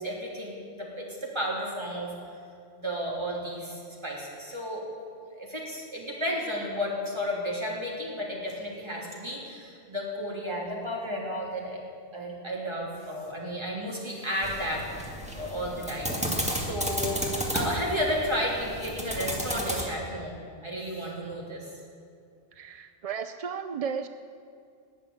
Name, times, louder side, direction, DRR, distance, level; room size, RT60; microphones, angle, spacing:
voice 1, 0.0-2.1 2.8-4.8 5.3-11.8 12.1-14.9 15.3-17.2 17.5-21.7, equal, 25° right, -3 dB, 3.3 m, -33 dB
sound 1, 14.4-19.8, equal, 5° right, 2.1 m, -32 dB
voice 2, 22.5-24.1, right 6 dB, 50° right, 10 dB, 0.4 m, -34 dB
20.0 x 7.2 x 9.6 m, 2.3 s
omnidirectional pair, 1.1 m